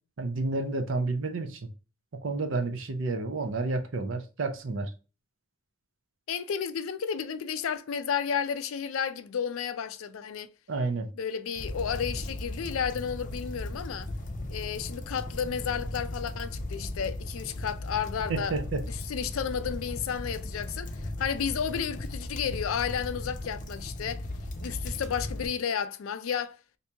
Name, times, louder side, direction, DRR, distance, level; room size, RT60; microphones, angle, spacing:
voice 1, 0.2-1.6 2.2-4.9 10.7-11.1 18.3-18.8, right 3 dB, 65° right, 0.6 m, -30 dB
voice 2, 6.3-10.5 11.2-14.1 14.5-18.6 18.8-24.3 24.6-26.6, left 7 dB, 85° left, 0.4 m, -32 dB
sound 1, 11.6-25.5, left 1 dB, 40° left, 0.6 m, -37 dB
2.9 x 2.7 x 3.3 m
head